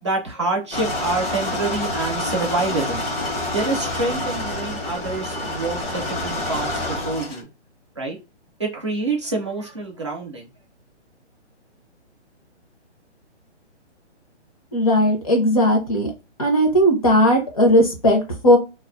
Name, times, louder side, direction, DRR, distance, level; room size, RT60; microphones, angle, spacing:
voice 1, 0.0-3.0 3.5-7.5 8.0-8.2 8.6-10.5, right 3 dB, 25° right, -1 dB, 0.5 m, -27 dB
sound 1, 0.7-7.4, left 1 dB, 50° left, 1.0 m, -27 dB
voice 2, 14.7-16.1 16.4-18.6, equal, 30° left, 2 dB, 0.7 m, -17 dB
2.4 x 2.4 x 2.3 m, 0.27 s
hypercardioid pair, 175°, 35 cm